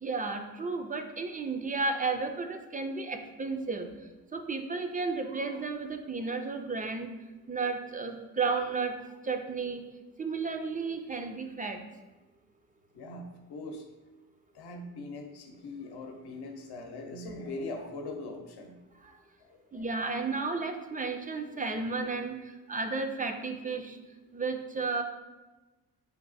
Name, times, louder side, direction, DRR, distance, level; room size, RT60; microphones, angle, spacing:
voice 1, 0.0-3.9 4.3-7.1 7.5-9.0 9.2-9.8 10.2-11.8 19.0-19.1 19.7-24.0 24.3-25.0, right 4 dB, 25° right, 6 dB, 0.3 m, -33 dB
voice 2, 12.9-13.8 14.5-18.8 19.4-19.9, left 2 dB, 75° left, 4 dB, 0.7 m, -41 dB
4.6 x 2.8 x 4.0 m, 1.1 s
cardioid pair, 110°, 39 cm